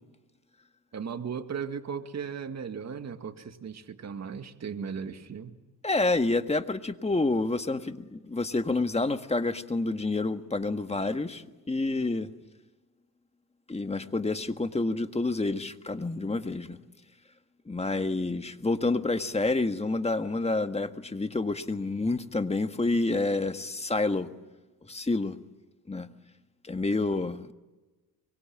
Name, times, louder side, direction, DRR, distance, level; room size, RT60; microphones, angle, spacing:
voice 1, 0.9-5.6, right 6 dB, 40° right, 2.1 m, -36 dB
voice 2, 5.8-12.3 13.7-16.8 17.7-24.3 24.9-25.4 25.9-26.1 26.6-27.5, left 2 dB, 15° left, 1.6 m, -28 dB
24.0 x 24.0 x 8.9 m
cardioid pair, 85°, 40 cm